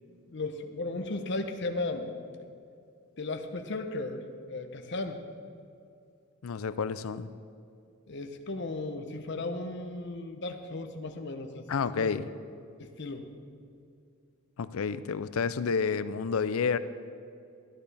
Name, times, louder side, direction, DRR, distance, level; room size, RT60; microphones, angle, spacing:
voice 1, 0.3-2.1 3.2-5.2 8.1-12.1 12.8-13.2, left 2 dB, 55° left, 6 dB, 0.8 m, -35 dB
voice 2, 6.4-7.3 11.7-12.3 14.6-16.8, left 5 dB, 85° left, 14 dB, 0.4 m, -30 dB
13.0 x 12.0 x 3.4 m, 2.4 s
head